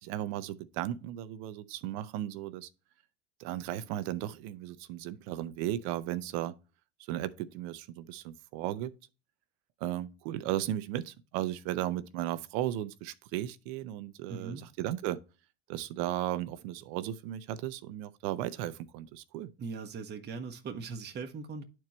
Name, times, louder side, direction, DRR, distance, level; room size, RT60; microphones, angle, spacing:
voice 1, 0.0-2.7 3.4-6.5 7.1-8.9 9.8-15.2 15.7-19.5, right 13 dB, 65° right, 0.7 m, -35 dB
voice 2, 14.3-14.6 19.6-21.6, right 4 dB, 30° right, 1.0 m, -40 dB
10.5 x 4.5 x 3.1 m
hypercardioid pair, 75°, 34 cm